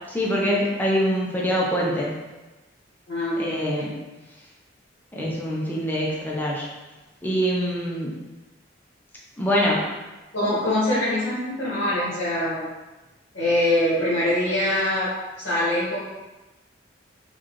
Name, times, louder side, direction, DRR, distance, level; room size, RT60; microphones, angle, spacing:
voice 1, 0.1-2.1 3.4-3.9 5.1-6.7 7.2-8.1 9.4-9.8, equal, 10° left, -4 dB, 0.6 m, -24 dB
voice 2, 3.1-3.9 10.3-12.6 13.3-15.1 15.4-16.0, left 1 dB, 80° left, -11 dB, 1.4 m, -23 dB
4.9 x 2.4 x 3.0 m, 1.1 s
head